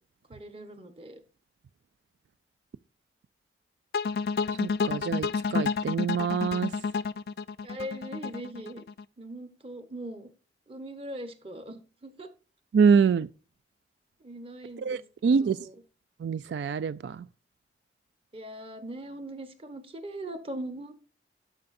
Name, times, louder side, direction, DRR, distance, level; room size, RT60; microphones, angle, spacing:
voice 1, 0.3-1.2 7.6-8.8 9.2-10.3 10.7-12.3 14.2-15.0 15.4-15.7 18.3-20.9, right 1 dB, 30° right, 1.1 m, -40 dB
sound 1, 3.9-9.0, left 5 dB, 60° left, 0.3 m, -30 dB
voice 2, 4.6-6.7 12.7-13.3 14.8-15.7 16.2-17.3, right 6 dB, 80° right, 0.3 m, -25 dB
12.0 x 5.8 x 2.6 m
head